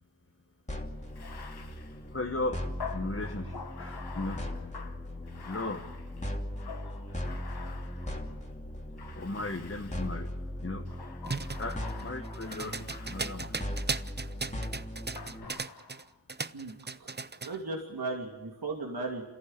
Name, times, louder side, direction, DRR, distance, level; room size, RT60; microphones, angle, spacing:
sound 1, 0.7-15.4, left 1 dB, 20° left, 2.8 m, -39 dB
Bathtub (filling or washing), 1.1-8.4 9.0-10.3 10.8-14.0 15.2-16.1, left 6 dB, 85° left, 1.4 m, -47 dB
voice 1, 2.1-2.6 2.9-4.4 5.4-5.8 9.1-10.3 10.6-10.8 11.6-13.5, left 2 dB, 35° left, 2 dB, 1.6 m, -36 dB
sound 2, 11.2-16.0 16.3-17.6, right 4 dB, 25° right, 0.7 m, -37 dB
voice 2, 17.4-19.2, right 3 dB, 75° right, 0 dB, 2.9 m, -36 dB
28.0 x 14.5 x 9.1 m, 1.1 s
wide cardioid pair, 60°, 38 cm